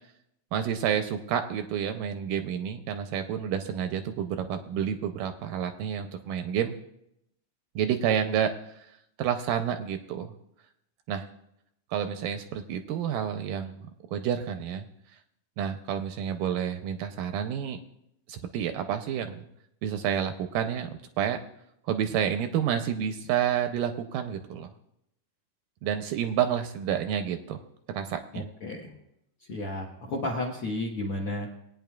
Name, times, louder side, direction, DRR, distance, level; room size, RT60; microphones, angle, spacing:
voice 1, 0.5-6.8 7.8-8.9 9.2-10.3 11.1-11.2 11.9-14.9 15.6-17.8 18.3-19.4 19.8-21.4 21.8-24.7 25.8-27.6 27.9-28.5, right 9 dB, 80° right, 7 dB, 2.0 m, -29 dB
voice 2, 28.3-28.9 29.5-31.6, left 1 dB, 65° left, -2 dB, 1.4 m, -33 dB
20.5 x 9.4 x 2.3 m, 0.78 s
omnidirectional pair, 4.2 m